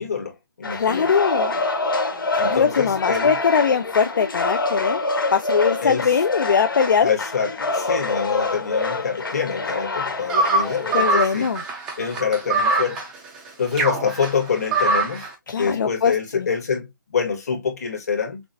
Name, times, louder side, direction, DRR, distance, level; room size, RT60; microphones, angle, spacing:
voice 1, 0.0-1.1 2.4-3.4 5.8-6.2 7.0-11.5 12.0-13.0 13.6-18.4, left 6 dB, 45° left, 1.6 m, -26 dB
sound 1, 0.6-11.1, left 3 dB, 85° left, 1.3 m, -26 dB
voice 2, 0.7-1.5 2.3-5.0 5.3-7.1 10.9-11.6 15.5-16.5, left 6 dB, 70° left, 0.5 m, -21 dB
sound 2, 10.3-15.3, right 3 dB, 5° right, 0.5 m, -23 dB
6.1 x 2.1 x 2.7 m
hypercardioid pair, 170°, 11 cm